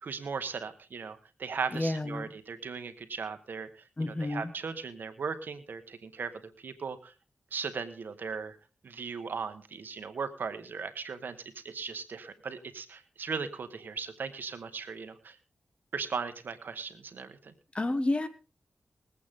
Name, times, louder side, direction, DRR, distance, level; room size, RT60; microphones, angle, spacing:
voice 1, 0.0-6.3 6.6-7.1 7.5-8.6 8.8-11.4 11.6-15.4 15.9-17.5, right 5 dB, 75° right, 9 dB, 1.5 m, -38 dB
voice 2, 1.7-2.3 4.0-4.5 17.7-18.3, left 2 dB, 35° left, 11 dB, 1.7 m, -30 dB
21.5 x 8.5 x 3.8 m, 0.32 s
cardioid pair, 45°, 3 cm